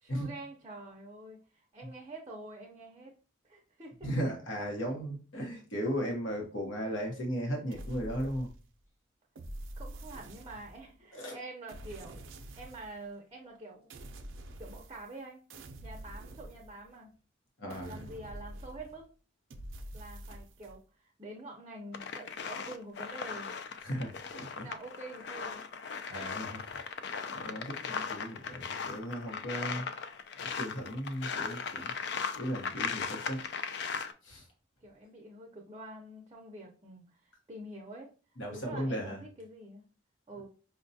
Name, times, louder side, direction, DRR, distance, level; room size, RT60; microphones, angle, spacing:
voice 1, 0.0-3.1 3.4-4.1 9.8-12.2 12.6-13.9 14.6-15.4 15.8-17.1 17.8-19.1 19.9-23.5 24.6-25.6 34.8-38.1 38.5-39.9 40.3-40.5, right 2 dB, 25° right, 0 dB, 0.5 m, -47 dB
voice 2, 4.0-8.5 11.1-11.4 17.6-18.0 23.8-24.7 26.1-26.6 27.3-29.8 30.4-31.9 32.3-33.5 34.2-34.4 38.4-39.2, equal, 85° left, 1 dB, 0.9 m, -36 dB
sound 1, 7.7-8.8 9.3-11.0 11.7-13.0 13.9-15.2 15.5-17.1 17.7-19.1 19.5-20.8, right 1 dB, 85° right, 0.5 m, -46 dB
sound 2, 21.9-34.1, left 5 dB, 60° left, 0.3 m, -38 dB
5.2 x 2.2 x 2.7 m, 0.37 s
head